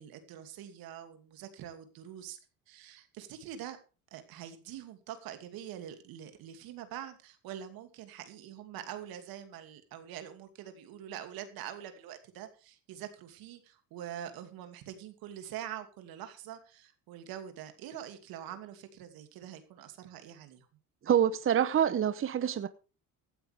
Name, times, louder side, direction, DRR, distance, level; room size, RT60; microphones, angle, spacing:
voice 1, 0.0-2.4 2.7-3.8 4.1-20.7, right 10 dB, 75° right, 8 dB, 2.6 m, -45 dB
voice 2, 21.1-22.7, right 9 dB, 35° right, 13 dB, 0.9 m, -26 dB
16.0 x 12.0 x 3.5 m, 0.33 s
cardioid pair, 95°, 36 cm